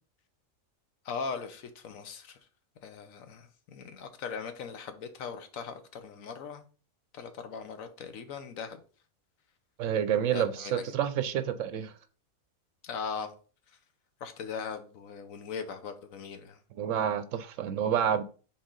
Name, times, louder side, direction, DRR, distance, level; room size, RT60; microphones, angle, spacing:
voice 1, 1.0-2.4 2.8-6.7 7.1-8.8 10.3-10.9 12.8-13.3 13.7-13.8 14.2-16.6, left 6 dB, 75° left, 1.2 m, -39 dB
voice 2, 9.8-11.9 16.8-18.2, right 9 dB, 70° right, 0.9 m, -29 dB
6.3 x 4.1 x 3.7 m
omnidirectional pair, 1.5 m